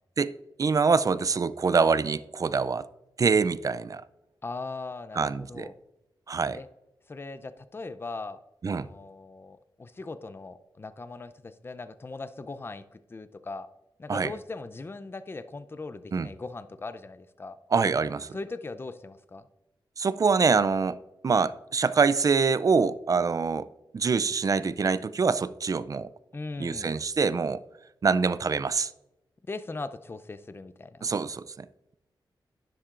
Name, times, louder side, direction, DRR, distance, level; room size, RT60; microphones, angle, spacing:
voice 1, 0.6-2.8 3.2-4.0 5.2-5.7 6.3-6.6 8.6-8.9 14.1-14.3 16.1-16.3 17.7-18.4 20.0-21.0 21.2-23.7 23.9-26.1 26.6-27.6 28.0-28.9 31.0-31.7, right 5 dB, 45° right, 0.4 m, -25 dB
voice 2, 4.4-5.7 6.5-6.7 7.1-8.4 8.7-12.8 13.1-13.7 14.0-17.6 18.3-19.4 26.3-26.9 29.5-31.1, left 3 dB, 25° left, 0.5 m, -39 dB
11.0 x 10.5 x 2.5 m
wide cardioid pair, 120°, 8 cm